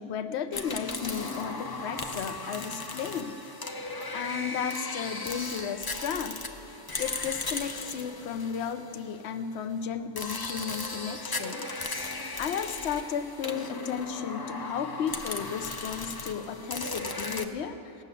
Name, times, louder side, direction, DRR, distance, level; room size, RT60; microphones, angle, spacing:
voice 1, 0.0-3.5 3.7-6.4 7.0-11.7 12.0-18.0, left 7 dB, 65° left, 9 dB, 0.9 m, -34 dB
sound 1, 0.5-9.4 10.2-17.4, left 3 dB, 30° left, 0.4 m, -36 dB
18.5 x 6.7 x 8.3 m, 2.9 s
omnidirectional pair, 1.3 m